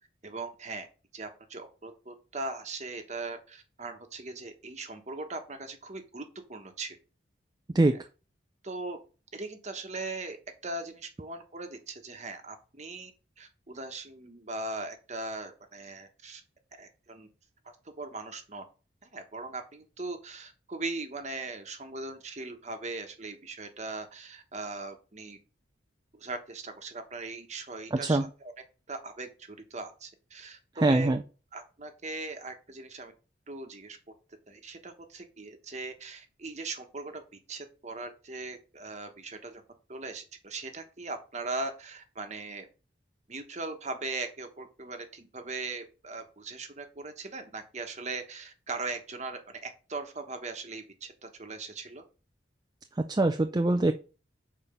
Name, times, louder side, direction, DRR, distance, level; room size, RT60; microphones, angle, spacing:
voice 1, 0.2-0.9 1.1-7.0 7.8-8.0 8.6-9.0 9.3-10.4 10.6-13.1 13.4-16.4 16.8-17.3 18.0-18.6 19.0-25.4 26.1-28.5 28.9-31.2 31.5-33.1 33.5-34.0 34.5-37.2 37.5-39.6 39.9-42.7 43.3-52.0, right 3 dB, 35° right, 6 dB, 1.1 m, -39 dB
voice 2, 27.9-28.3 30.8-31.2 53.1-53.9, right 2 dB, 20° right, 7 dB, 0.4 m, -23 dB
6.8 x 4.3 x 5.4 m, 0.34 s
head